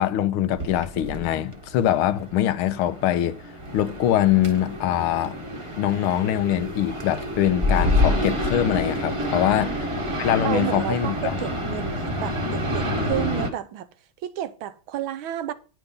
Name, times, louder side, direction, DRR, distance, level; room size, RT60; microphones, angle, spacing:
voice 1, 0.0-3.4 3.7-5.4 5.8-9.8 10.2-11.4, left 11 dB, 85° left, 1.6 m, -23 dB
sound 1, 0.5-13.5, left 1 dB, 15° right, 1.2 m, -28 dB
voice 2, 9.2-9.8 10.4-13.9 14.2-15.5, right 11 dB, 75° right, 1.6 m, -31 dB
10.0 x 5.7 x 5.3 m
omnidirectional pair, 2.3 m